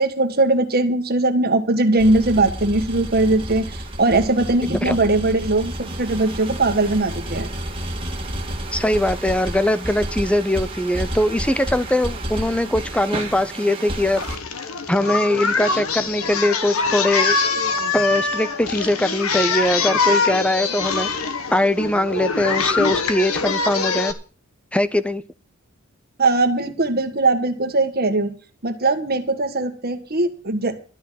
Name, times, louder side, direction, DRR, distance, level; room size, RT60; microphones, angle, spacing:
voice 1, 0.0-7.5 26.2-28.3 28.6-30.8, right 2 dB, 45° right, 7 dB, 1.6 m, -20 dB
sound 1, 2.0-14.4, right 1 dB, 25° right, 2.0 m, -31 dB
voice 2, 8.7-14.2 14.9-17.4 17.9-21.1 21.5-24.1 24.7-25.2, left 1 dB, 5° left, 14 dB, 0.6 m, -21 dB
Singing, 14.2-24.1, left 4 dB, 80° left, 1.4 m, -23 dB
12.5 x 6.1 x 9.3 m, 0.39 s
head